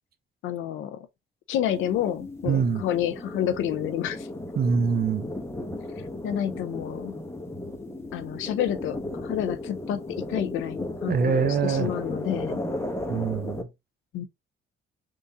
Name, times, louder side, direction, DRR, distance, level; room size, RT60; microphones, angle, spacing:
voice 1, 0.4-1.1 1.5-4.3 6.2-7.2 8.1-12.6 14.1-14.2, left 10 dB, 85° left, 0.6 m, -29 dB
sound 1, 1.6-13.6, left 1 dB, 15° left, 1.0 m, -35 dB
voice 2, 2.5-2.8 4.6-5.3 11.1-11.9 13.1-13.7, right 6 dB, 50° right, 0.7 m, -24 dB
3.8 x 2.6 x 3.4 m
cardioid pair, 90°, 20 cm